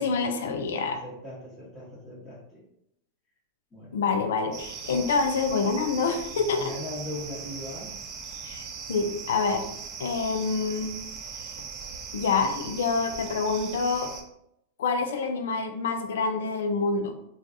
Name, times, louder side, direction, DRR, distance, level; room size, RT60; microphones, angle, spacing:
voice 1, 0.0-1.0 3.9-6.7 8.4-9.6 10.0-11.0 12.1-14.1 14.8-17.1, left 4 dB, 75° left, 6 dB, 0.4 m, -27 dB
voice 2, 0.8-2.6 3.7-3.9 6.4-8.0, left 1 dB, 20° left, -8 dB, 1.0 m, -39 dB
sound 1, 4.5-14.2, right 6 dB, 45° right, 0.5 m, -39 dB
3.2 x 2.3 x 2.6 m, 0.78 s
hypercardioid pair, 95°, 0 cm